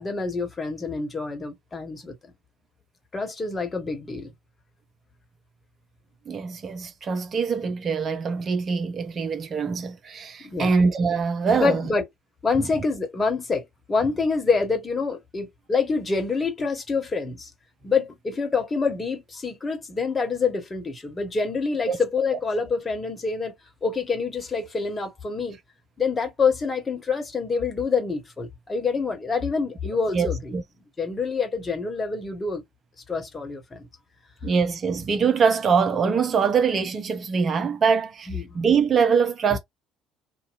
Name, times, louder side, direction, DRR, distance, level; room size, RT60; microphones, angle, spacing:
voice 1, 0.0-2.1 3.1-4.3 10.4-10.7 11.5-12.0 12.4-17.5 17.8-23.5 23.8-25.6 26.0-30.6 31.0-32.6 33.1-33.9 38.3-38.5, left 4 dB, 30° left, 1.3 m, -26 dB
voice 2, 6.3-11.9 12.6-12.7 21.9-22.0 30.1-30.6 34.4-39.6, right 5 dB, 40° right, 0.8 m, -23 dB
2.9 x 2.5 x 2.6 m
figure-of-eight pair, 55°, 0 cm